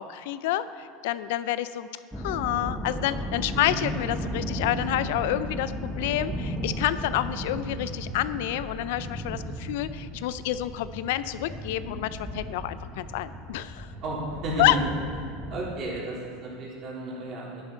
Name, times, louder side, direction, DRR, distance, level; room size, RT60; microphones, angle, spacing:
voice 1, 0.0-1.9 2.2-13.9 14.6-14.8, left 13 dB, 70° left, 14 dB, 0.4 m, -28 dB
sound 1, 2.1-15.6, equal, ahead, 1.0 m, -35 dB
voice 2, 14.0-14.8 15.5-17.6, right 2 dB, 35° right, -5 dB, 3.4 m, -33 dB
11.5 x 10.5 x 4.5 m, 2.2 s
supercardioid pair, 150°, 0 cm